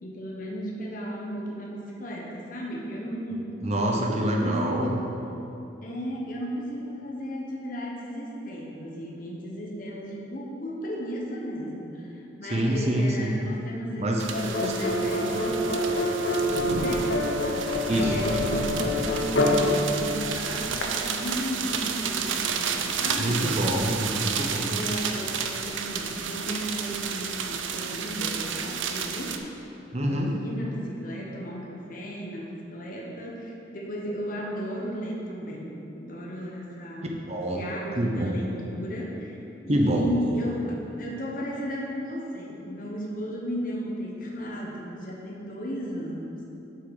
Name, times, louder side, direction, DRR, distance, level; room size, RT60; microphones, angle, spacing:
voice 1, 0.0-5.0 5.8-15.9 16.4-17.6 17.9-23.4 24.7-29.4 30.0-37.1 37.5-39.4 39.6-40.7 40.9-46.4, equal, 45° left, -3 dB, 1.2 m, -35 dB
voice 2, 3.6-4.9 12.5-13.4 14.0-14.2 14.6-14.7 17.9-18.2 23.2-24.8 29.9-30.3 37.3-37.6 38.0-38.4 39.7-40.0, right 1 dB, 35° right, 0 dB, 0.8 m, -26 dB
sound 1, 14.2-29.4, right 6 dB, 90° right, 0.6 m, -31 dB
sound 2, 14.3-20.8, left 1 dB, 65° left, 0.9 m, -26 dB
7.8 x 6.3 x 5.5 m, 2.9 s
head